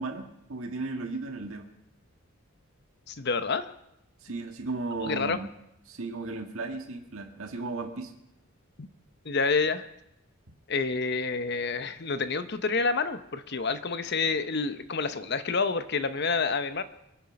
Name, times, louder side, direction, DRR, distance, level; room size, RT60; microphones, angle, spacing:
voice 1, 0.0-1.7 4.2-5.5 5.9-8.1, right 3 dB, 75° right, 3 dB, 1.7 m, -35 dB
voice 2, 3.1-3.7 5.0-5.4 8.8-8.9 9.2-9.9 10.7-16.8, left 4 dB, 50° left, 11 dB, 0.9 m, -28 dB
24.5 x 9.1 x 5.3 m, 0.82 s
head